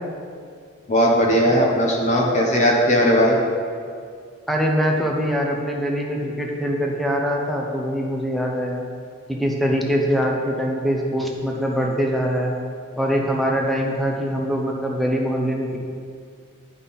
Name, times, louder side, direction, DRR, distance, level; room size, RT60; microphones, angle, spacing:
voice 1, 0.9-3.4, equal, 35° left, -1 dB, 1.0 m, -18 dB
voice 2, 4.5-8.8 9.3-12.5 13.0-15.8, equal, ahead, -1 dB, 0.8 m, -23 dB
9.6 x 5.6 x 4.2 m, 2.2 s
head